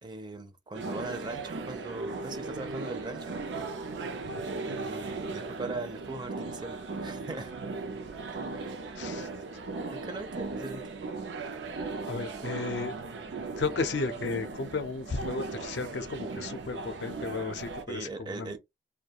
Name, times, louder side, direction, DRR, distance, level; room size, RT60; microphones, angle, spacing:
voice 1, 0.0-3.3 4.4-7.5 8.5-8.8 9.9-10.8 17.9-18.6, right 3 dB, 25° right, 0.4 m, -40 dB
sound 1, 0.7-17.8, right 3 dB, 90° right, 0.5 m, -37 dB
voice 2, 9.0-9.3 12.1-13.0 13.6-18.6, left 4 dB, 75° left, 0.5 m, -34 dB
2.3 x 2.2 x 2.7 m
head